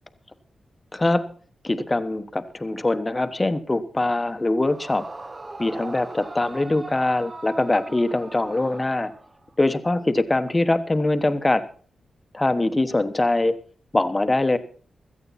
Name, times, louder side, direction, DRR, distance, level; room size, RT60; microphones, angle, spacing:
voice 1, 0.9-1.2 1.6-5.0 5.6-9.1 9.6-11.6 12.3-13.6 13.9-14.6, left 2 dB, 20° left, 11 dB, 1.2 m, -22 dB
Yell / Screaming, 4.6-9.5, right 2 dB, 25° right, 0.8 m, -40 dB
16.5 x 14.0 x 4.2 m, 0.42 s
wide cardioid pair, 115°, 0 cm